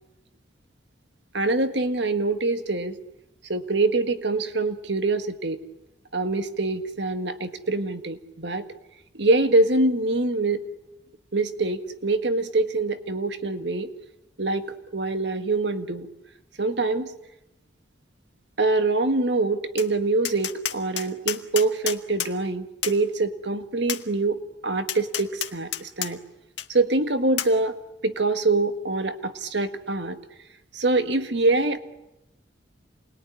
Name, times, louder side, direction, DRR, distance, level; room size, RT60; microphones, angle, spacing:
voice 1, 1.3-3.0 3.5-5.6 6.1-8.6 9.1-10.6 11.3-13.9 14.4-16.1 16.6-17.1 18.6-26.2 26.7-27.8 28.0-30.2 30.7-31.8, right 2 dB, 70° right, 8 dB, 1.7 m, -24 dB
Tap, 19.8-19.9 20.2-22.3 22.8-23.0 23.9-24.0 24.9-26.1 26.6-26.7 27.4-27.5, left 11 dB, 70° left, 1.7 m, -29 dB
28.5 x 21.0 x 9.9 m, 0.92 s
head